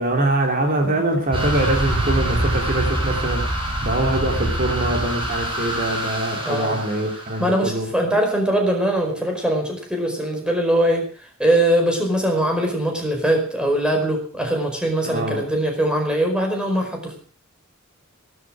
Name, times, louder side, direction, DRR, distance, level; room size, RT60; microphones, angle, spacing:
voice 1, 0.0-7.9 15.0-15.5, right 2 dB, 40° right, 3 dB, 3.2 m, -23 dB
sound 1, 1.3-7.7, right 1 dB, 25° right, 6.0 m, -25 dB
voice 2, 6.5-6.8 7.4-11.0 11.4-17.2, right 1 dB, 5° right, 2 dB, 4.8 m, -21 dB
16.5 x 13.0 x 6.2 m, 0.44 s
head